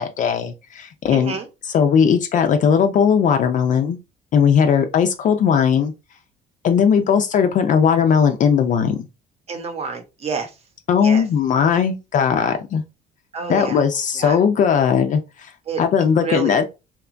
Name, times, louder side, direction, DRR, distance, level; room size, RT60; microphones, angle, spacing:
voice 1, 0.0-1.4 1.7-4.0 4.3-5.9 6.6-9.1 10.9-12.8 13.5-15.5 15.8-16.6, left 7 dB, 50° left, 0.4 m, -18 dB
voice 2, 1.1-1.5 9.5-10.6 11.0-11.2 13.3-13.8 14.1-14.4 15.7-15.8 16.2-16.6, right 5 dB, 40° right, 0.7 m, -28 dB
2.8 x 2.2 x 2.4 m
cardioid pair, 110°, 17 cm